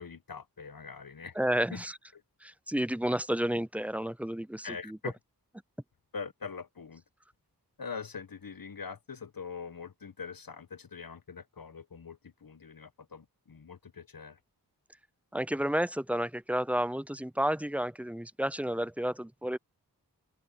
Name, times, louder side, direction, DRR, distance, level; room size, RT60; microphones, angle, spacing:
voice 1, 0.0-1.4 1.7-1.8 2.1-2.2 4.6-5.2 6.1-7.0 7.8-14.4, left 5 dB, 60° left, 1.1 m, -43 dB
voice 2, 1.4-1.9 2.4-5.0 15.3-19.6, equal, 5° right, 0.4 m, -31 dB
open air
wide cardioid pair, 40°, 39 cm